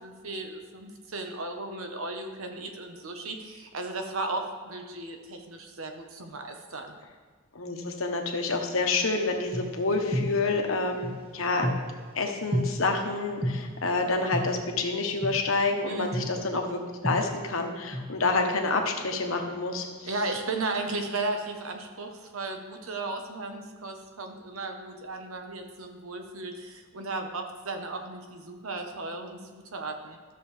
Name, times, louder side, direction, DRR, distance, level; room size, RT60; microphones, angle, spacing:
voice 1, 0.0-7.0 15.9-16.3 20.0-30.2, right 2 dB, 75° right, 4 dB, 1.1 m, -35 dB
voice 2, 7.5-11.7 12.1-20.1, left 3 dB, 65° left, 3 dB, 1.1 m, -28 dB
sound 1, 9.4-12.1 12.5-12.6 13.4-13.5 14.3-14.4 15.2-15.3 16.1-16.2 17.0-18.6 18.9-20.6, equal, 25° right, 1.1 m, -32 dB
13.0 x 6.8 x 3.3 m, 1.5 s
head